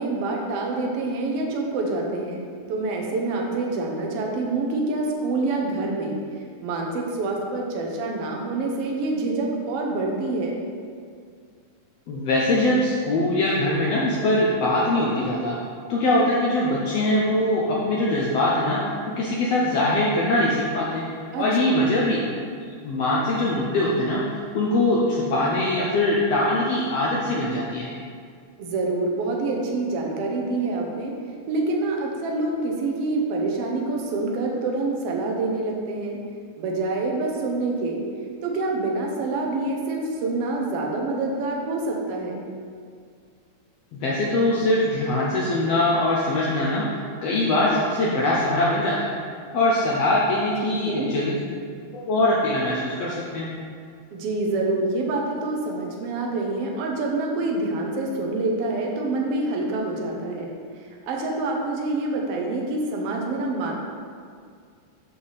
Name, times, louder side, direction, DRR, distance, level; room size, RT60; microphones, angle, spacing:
voice 1, 0.0-6.2 6.6-10.6 21.3-21.9 28.6-31.1 31.5-36.2 36.6-38.0 38.4-42.4 50.6-51.1 54.1-60.5 61.0-63.7, right 2 dB, 65° right, 0 dB, 1.5 m, -26 dB
voice 2, 12.1-15.6 15.9-21.0 21.4-22.2 22.8-24.2 24.5-27.9 43.9-46.9 47.2-49.2 49.5-51.4 51.9-53.5, left 1 dB, 75° left, -4 dB, 1.5 m, -22 dB
8.1 x 5.7 x 4.0 m, 2.2 s
omnidirectional pair, 3.7 m